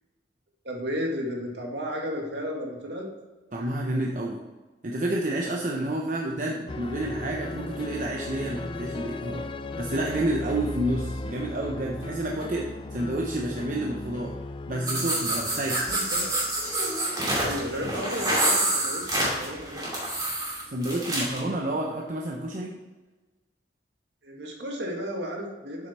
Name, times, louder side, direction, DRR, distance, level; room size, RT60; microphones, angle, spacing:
voice 1, 0.6-3.1 15.5-15.6 15.9-16.3 17.2-19.9 24.2-25.9, equal, 75° right, 1 dB, 1.8 m, -33 dB
voice 2, 3.5-4.4 4.8-9.5 9.8-14.3 14.7-15.9 20.7-22.8, right 1 dB, 50° right, -1 dB, 0.8 m, -29 dB
sound 1, 6.7-16.0, left 2 dB, 30° left, 0.4 m, -36 dB
sound 2, 14.8-21.4, right 1 dB, 20° right, 2.6 m, -27 dB
7.7 x 6.5 x 4.2 m, 1.2 s
head